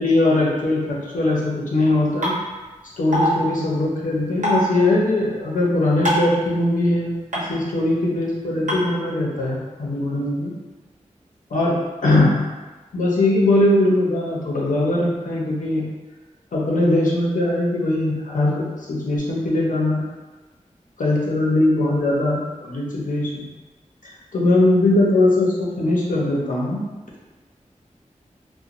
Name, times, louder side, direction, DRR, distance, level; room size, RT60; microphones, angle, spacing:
voice 1, 0.0-2.4 3.0-10.5 11.5-11.8 12.0-12.4 12.9-15.8 16.5-20.0 21.0-23.5 24.3-26.9, left 2 dB, 85° left, -4 dB, 0.6 m, -20 dB
sound 1, 2.2-2.3 3.1-3.3 4.4-4.6 6.1-6.3 7.3-7.4 8.7-8.8, equal, 70° right, 0.9 m, -20 dB
2.9 x 2.1 x 2.5 m, 1.2 s
wide cardioid pair, 55°, 13 cm